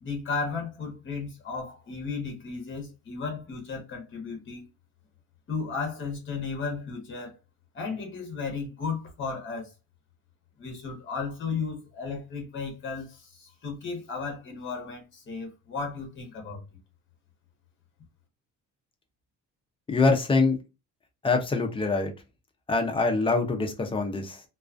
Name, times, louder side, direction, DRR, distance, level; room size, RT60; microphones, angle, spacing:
voice 1, 0.0-4.6 5.5-7.4 7.7-9.7 10.6-16.6, left 4 dB, 40° left, 0.8 m, -34 dB
voice 2, 19.9-20.6 21.2-22.1 22.7-24.4, left 3 dB, 15° left, 0.4 m, -24 dB
2.3 x 2.3 x 2.4 m
cardioid pair, 160°, 32 cm